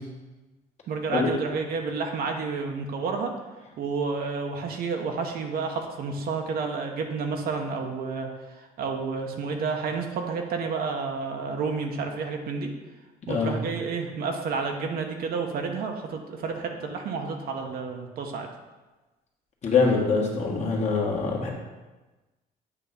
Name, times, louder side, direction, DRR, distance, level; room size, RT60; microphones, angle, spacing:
voice 1, 0.9-3.3 3.8-8.3 8.5-12.7 13.3-18.5, right 4 dB, 60° right, 3 dB, 1.0 m, -30 dB
voice 2, 19.6-21.5, left 4 dB, 40° left, -2 dB, 1.5 m, -24 dB
8.3 x 3.1 x 5.4 m, 1.2 s
cardioid pair, 110°, 17 cm